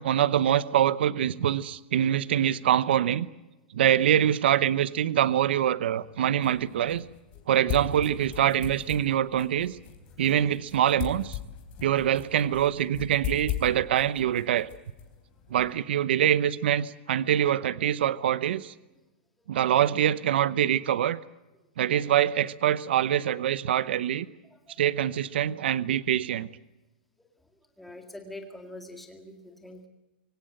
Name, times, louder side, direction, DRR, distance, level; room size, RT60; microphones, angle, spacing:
voice 1, 0.0-3.3 3.7-7.1 7.5-9.8 10.2-11.4 11.8-14.7 15.5-18.7 19.5-21.2 21.8-24.3 24.8-26.5, right 10 dB, 65° right, 17 dB, 0.9 m, -24 dB
sound 1, 5.9-15.8, left 10 dB, 25° left, 3.7 m, -39 dB
voice 2, 27.8-29.9, left 1 dB, ahead, 4 dB, 2.1 m, -45 dB
24.5 x 17.0 x 8.9 m, 1.0 s
supercardioid pair, 180°, 6 cm